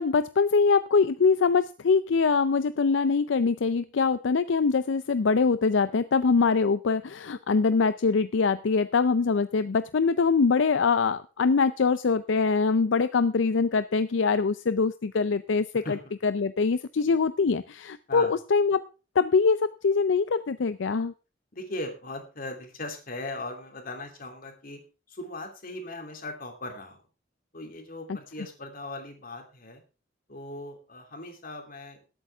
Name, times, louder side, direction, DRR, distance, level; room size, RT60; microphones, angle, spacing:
voice 1, 0.0-15.8 16.2-18.8 19.2-21.1, left 4 dB, 75° left, 13 dB, 0.5 m, -23 dB
voice 2, 15.7-16.1 18.1-18.3 21.5-24.8 25.1-27.0 27.5-29.8 30.3-32.0, left 2 dB, 50° left, 4 dB, 3.0 m, -38 dB
19.5 x 8.6 x 3.5 m, 0.33 s
head